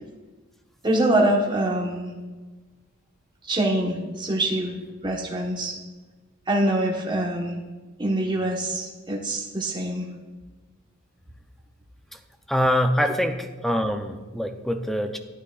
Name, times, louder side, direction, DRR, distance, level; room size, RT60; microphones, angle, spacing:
voice 1, 0.8-2.1 3.5-4.8 5.0-5.7 6.5-7.6 8.0-10.1, right 1 dB, 20° right, -1 dB, 1.1 m, -24 dB
voice 2, 12.5-15.2, equal, ahead, 7 dB, 0.4 m, -24 dB
12.5 x 8.9 x 2.4 m, 1.3 s
head